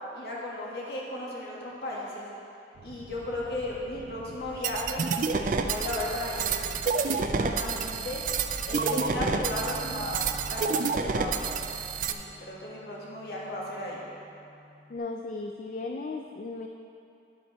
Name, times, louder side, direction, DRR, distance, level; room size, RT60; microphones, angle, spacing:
voice 1, 0.1-2.3 2.8-5.0 5.6-6.6 7.0-8.2 8.6-11.5 12.1-14.0, left 1 dB, 60° left, -5 dB, 1.8 m, -35 dB
sound 1, 2.7-10.5, right 2 dB, 80° right, 0.7 m, -47 dB
sound 2, 4.6-12.1, right 5 dB, 45° right, 0.4 m, -29 dB
Bass guitar, 8.7-15.0, left 2 dB, 10° left, 0.9 m, -46 dB
voice 2, 14.9-16.7, left 3 dB, 45° left, 3 dB, 0.3 m, -36 dB
10.0 x 7.3 x 4.2 m, 2.7 s
head